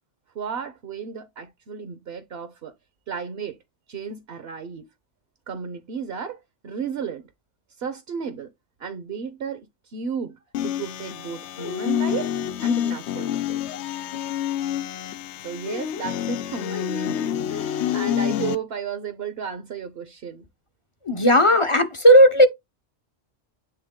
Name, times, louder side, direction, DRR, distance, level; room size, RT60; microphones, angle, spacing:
voice 1, 0.3-2.7 3.1-3.6 3.9-4.8 5.5-7.3 7.8-8.5 8.8-12.3 12.6-14.0 15.4-20.5, right 7 dB, 60° right, 1.0 m, -34 dB
sound 1, 10.5-18.6, left 10 dB, 75° left, 0.8 m, -27 dB
voice 2, 21.1-22.5, equal, 30° left, 0.6 m, -15 dB
8.7 x 3.6 x 3.6 m
omnidirectional pair, 1.2 m